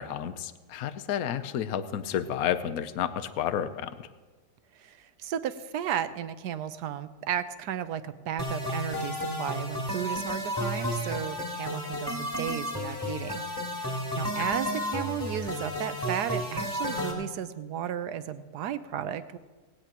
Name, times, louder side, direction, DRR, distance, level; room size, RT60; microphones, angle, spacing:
voice 1, 0.0-4.1 14.4-14.5, left 9 dB, 70° left, 12 dB, 1.1 m, -31 dB
voice 2, 4.8-13.4 14.2-19.4, right 9 dB, 85° right, 12 dB, 1.3 m, -34 dB
sound 1, 8.4-17.1, equal, 15° left, 3.3 m, -32 dB
18.5 x 17.5 x 2.9 m, 1.3 s
omnidirectional pair, 1.7 m